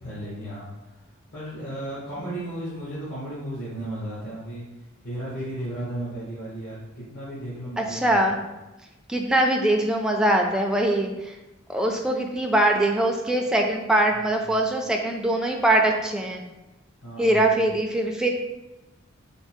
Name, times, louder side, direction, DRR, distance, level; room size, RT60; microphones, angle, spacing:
voice 1, 0.0-4.6 5.0-8.3 14.1-14.5 17.0-17.7, right 1 dB, 55° left, -9 dB, 1.1 m, -35 dB
voice 2, 7.8-8.4 9.1-11.1 11.7-16.4 17.2-18.3, right 1 dB, 5° right, 1 dB, 0.3 m, -22 dB
3.5 x 2.0 x 4.3 m, 1.0 s
head